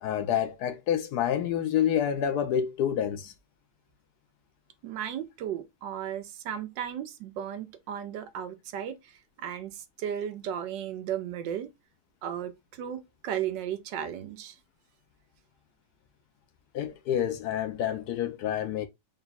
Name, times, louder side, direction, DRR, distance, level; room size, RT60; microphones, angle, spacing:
voice 1, 0.0-3.3 16.7-18.9, left 9 dB, 70° left, 1.0 m, -28 dB
voice 2, 4.8-9.1 9.4-11.7 12.2-14.6, right 9 dB, 80° right, 1.3 m, -35 dB
4.0 x 2.3 x 3.9 m
omnidirectional pair, 2.0 m